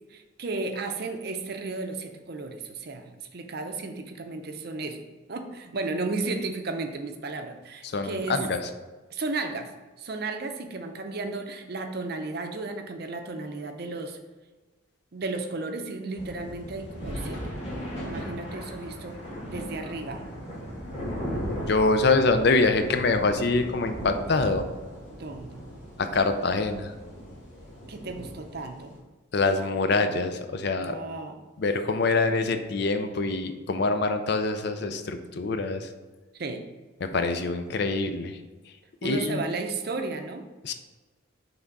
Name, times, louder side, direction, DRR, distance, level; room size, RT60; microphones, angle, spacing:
voice 1, 0.1-5.0 5.3-8.4 9.1-9.7 10.0-14.2 15.1-17.4 18.0-19.2 19.4-20.2 25.1-25.6 27.9-29.0 30.8-31.4 36.3-36.6 39.0-40.4, right 3 dB, 50° right, 6 dB, 0.6 m, -34 dB
voice 2, 7.8-8.6 17.7-18.0 21.7-24.7 26.0-26.9 29.3-31.0 31.6-35.9 37.0-38.4 39.0-39.4 40.6-40.7, left 3 dB, 50° left, 8 dB, 0.5 m, -25 dB
sound 1, 16.2-29.0, equal, 30° left, 1.8 m, -37 dB
5.9 x 3.5 x 5.3 m, 1.2 s
head